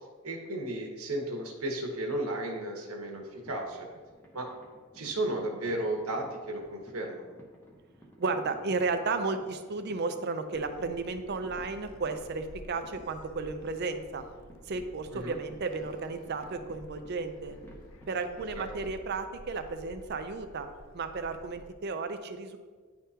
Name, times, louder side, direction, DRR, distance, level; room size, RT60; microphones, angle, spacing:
voice 1, 0.2-3.9 4.3-4.5 4.9-7.4 15.1-15.3 18.6-18.7, right 1 dB, 80° right, 1 dB, 1.1 m, -34 dB
sound 1, 3.0-19.0, right 1 dB, 10° left, 0.8 m, -55 dB
voice 2, 8.2-14.2 14.6-17.6 18.1-20.7 20.9-22.6, right 3 dB, 50° right, 8 dB, 0.5 m, -33 dB
Gull seagull, 10.5-21.7, left 1 dB, 65° left, 0.4 m, -52 dB
10.0 x 3.6 x 2.8 m, 1.5 s
head